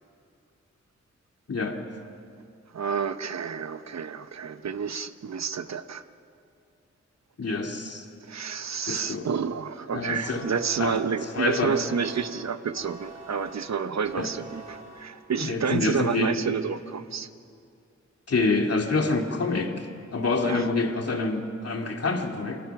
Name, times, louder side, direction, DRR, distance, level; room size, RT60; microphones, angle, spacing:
voice 1, 1.5-1.8 7.4-8.1 8.9-9.3 9.9-10.4 10.8-11.0 11.3-11.7 14.2-14.3 15.4-16.5 18.3-19.9 20.1-22.6, left 3 dB, 55° left, 3 dB, 2.5 m, -27 dB
voice 2, 2.7-6.0 8.2-17.3 20.4-20.6, right 6 dB, 65° right, 11 dB, 1.0 m, -30 dB
sound 1, 10.2-15.5, right 2 dB, 25° right, 6.7 m, -46 dB
29.5 x 24.5 x 5.9 m, 2.4 s
wide cardioid pair, 85°, 29 cm